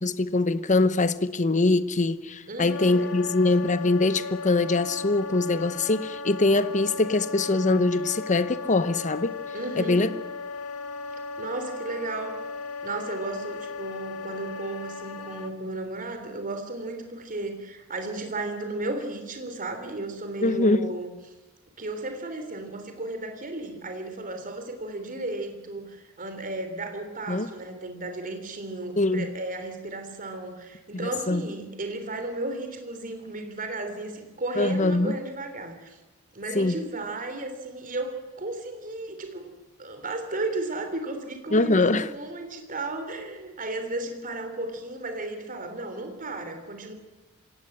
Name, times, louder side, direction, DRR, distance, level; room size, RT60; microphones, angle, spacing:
voice 1, 0.0-9.4 9.7-10.1 20.4-20.9 27.3-27.5 29.0-29.3 30.9-31.4 34.6-35.1 36.5-36.8 41.5-42.1, left 2 dB, 35° left, 1.0 m, -23 dB
voice 2, 2.5-3.3 9.5-10.1 11.4-12.4 12.8-21.1 21.8-36.0 36.3-39.5 39.8-46.9, right 2 dB, 40° right, 3.3 m, -34 dB
Wind instrument woodwind instrument, 2.7-15.5, left 4 dB, 85° left, 2.0 m, -36 dB
26.5 x 17.5 x 8.0 m
head